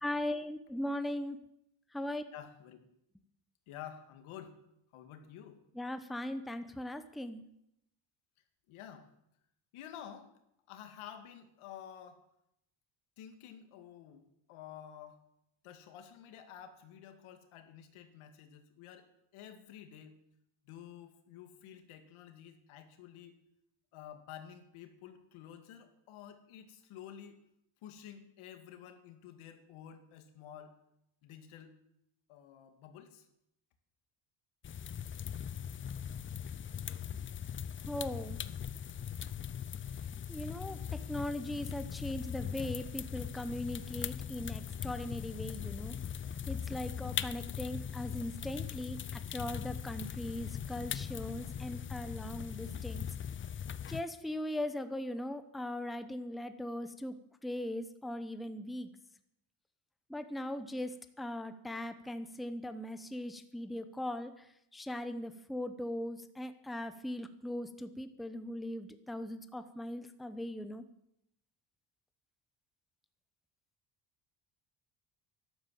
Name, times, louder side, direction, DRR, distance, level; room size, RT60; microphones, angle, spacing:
voice 1, 0.0-1.4 1.9-2.2 5.8-7.4 37.9-38.4 40.3-45.9 46.5-53.1 53.9-57.2 57.4-58.9 60.1-64.3 64.7-70.8, left 1 dB, ahead, 10 dB, 0.8 m, -39 dB
voice 2, 2.3-2.8 3.7-4.6 4.9-5.6 8.7-9.1 9.7-10.3 10.7-12.2 13.2-15.2 15.6-19.1 19.3-20.2 20.6-23.4 23.9-27.4 27.8-30.7 31.2-31.8 32.3-33.3, left 9 dB, 85° left, 8 dB, 2.3 m, -51 dB
sound 1, 34.6-54.0, left 8 dB, 25° left, 0.5 m, -40 dB
12.0 x 11.5 x 7.6 m, 0.78 s
cardioid pair, 135°, 48 cm